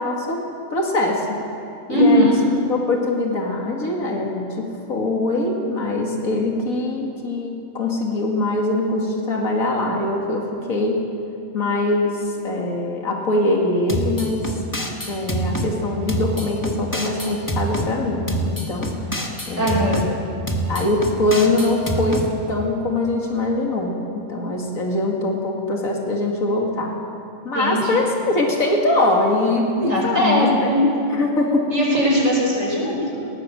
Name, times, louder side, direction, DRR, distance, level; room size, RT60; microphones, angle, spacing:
voice 1, 0.0-1.4 1.9-2.4 2.7-11.0 11.5-14.6 15.1-19.0 19.5-20.1 20.7-27.0 27.4-31.7, left 2 dB, 85° left, 0 dB, 2.6 m, -22 dB
voice 2, 1.9-2.4 19.6-20.0 27.5-28.0 29.9-30.9 31.7-33.3, equal, 70° right, -1 dB, 5.4 m, -19 dB
sound 1, 13.9-15.7 16.1-17.9 18.3-20.1 20.5-22.3, right 1 dB, 15° left, 1.8 m, -26 dB
19.5 x 19.0 x 7.6 m, 2.6 s
omnidirectional pair, 1.4 m